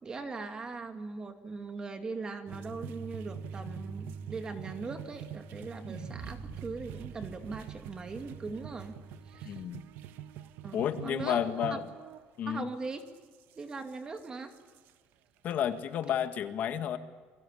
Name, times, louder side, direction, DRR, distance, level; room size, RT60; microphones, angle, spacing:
voice 1, 0.0-9.0 9.3-9.6 10.6-11.8 12.5-13.0 13.6-14.5, right 4 dB, 20° right, 6 dB, 2.4 m, -40 dB
sound 1, 2.5-9.7, right 3 dB, 5° right, 4.2 m, -46 dB
sound 2, 2.5-12.3 13.0-14.9 15.5-15.6 15.8-16.2, right 12 dB, 75° right, 1.2 m, -47 dB
sound 3, 5.9-10.2, right 5 dB, 40° right, 2.2 m, -48 dB
voice 2, 9.4-9.8 10.7-11.9 12.4-12.7 15.4-17.0, left 9 dB, 50° left, 8 dB, 1.7 m, -31 dB
29.0 x 22.5 x 8.6 m, 1.5 s
cardioid pair, 160°, 4 cm